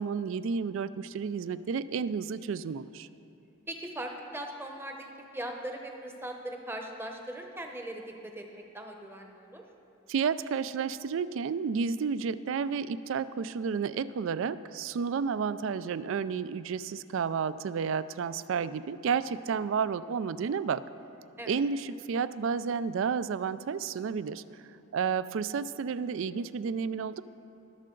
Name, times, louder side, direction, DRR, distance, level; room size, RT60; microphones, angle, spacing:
voice 1, 0.0-3.1 10.1-20.8 21.5-24.4 24.9-27.2, right 6 dB, 60° right, 16 dB, 0.3 m, -31 dB
voice 2, 3.7-9.6 21.4-21.5, right 1 dB, 10° right, 3 dB, 0.8 m, -40 dB
22.0 x 7.5 x 3.8 m, 2.7 s
head